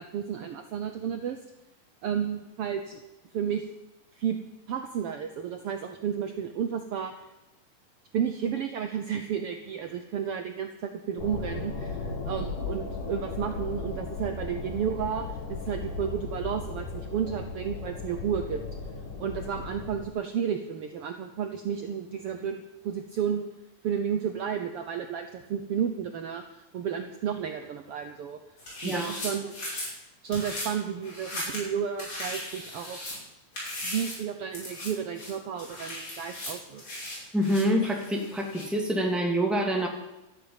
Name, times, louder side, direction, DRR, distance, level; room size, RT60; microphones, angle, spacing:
voice 1, 0.0-1.4 2.0-3.0 3.3-3.7 4.1-4.4 4.7-7.1 8.1-18.6 19.2-23.5 23.8-28.4 28.8-29.6 30.2-33.0 33.8-36.8, right 8 dB, 75° right, 6 dB, 1.3 m, -32 dB
sound 1, 11.2-20.1, left 4 dB, 70° left, 3.6 m, -36 dB
sound 2, 28.6-29.9 30.3-30.7 31.0-31.7 32.0-33.2 33.5-34.2 34.5-34.9 35.1-38.7, left 1 dB, 50° left, 7.4 m, -37 dB
voice 2, 28.8-29.1 37.3-39.9, equal, ahead, 1 dB, 2.0 m, -26 dB
13.0 x 11.0 x 8.9 m, 0.95 s
omnidirectional pair, 3.9 m